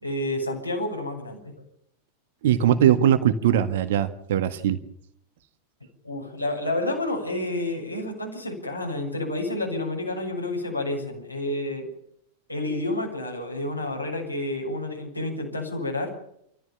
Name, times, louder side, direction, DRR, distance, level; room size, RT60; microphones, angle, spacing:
voice 1, 0.0-1.5 6.0-11.9 12.5-16.2, left 2 dB, 90° left, -1 dB, 6.8 m, -29 dB
voice 2, 2.4-4.8, right 10 dB, 55° right, 8 dB, 1.7 m, -20 dB
29.5 x 14.5 x 7.2 m, 0.74 s
figure-of-eight pair, 90°, 0 cm